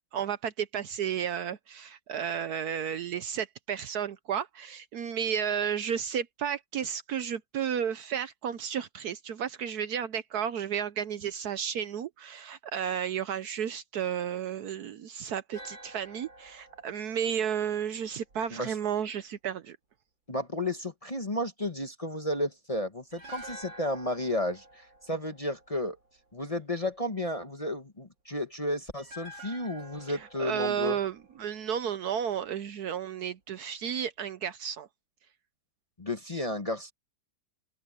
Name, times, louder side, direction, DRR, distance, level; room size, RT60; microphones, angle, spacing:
voice 1, 0.1-19.8 30.1-34.9, right 8 dB, 65° right, 1.1 m, -32 dB
sound 1, 15.5-18.7 23.1-26.3 29.0-32.2 32.5-32.6, right 1 dB, 90° right, 4.7 m, -50 dB
voice 2, 20.3-26.0 26.3-31.0 36.0-36.9, left 1 dB, 25° left, 1.1 m, -33 dB
open air
omnidirectional pair, 2.0 m